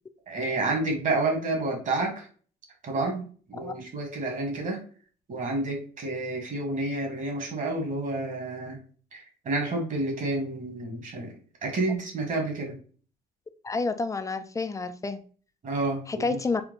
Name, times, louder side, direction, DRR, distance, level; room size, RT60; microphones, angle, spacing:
voice 1, 0.3-2.3 2.8-4.8 5.3-8.8 9.1-11.3 11.6-12.7 15.6-16.4, right 2 dB, 45° right, 1.7 m, -29 dB
voice 2, 13.6-15.2 16.1-16.6, left 3 dB, 20° left, 0.4 m, -29 dB
4.4 x 2.2 x 3.9 m
cardioid pair, 105°, 18 cm